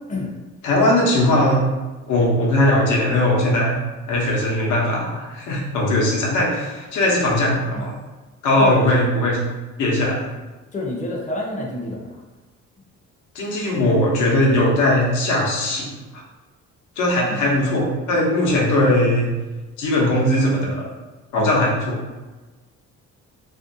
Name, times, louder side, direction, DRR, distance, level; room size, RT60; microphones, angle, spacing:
voice 1, 0.6-1.6 2.1-3.8 4.1-7.9 8.4-9.4 9.8-10.3 13.3-15.9 17.0-19.3 19.8-20.9 21.3-22.0, left 1 dB, 85° left, -3 dB, 0.8 m, -19 dB
voice 2, 10.7-12.2 17.2-17.5 21.4-21.6, left 2 dB, 25° left, -1 dB, 0.6 m, -28 dB
2.6 x 2.1 x 2.6 m, 1.2 s
cardioid pair, 90°, 30 cm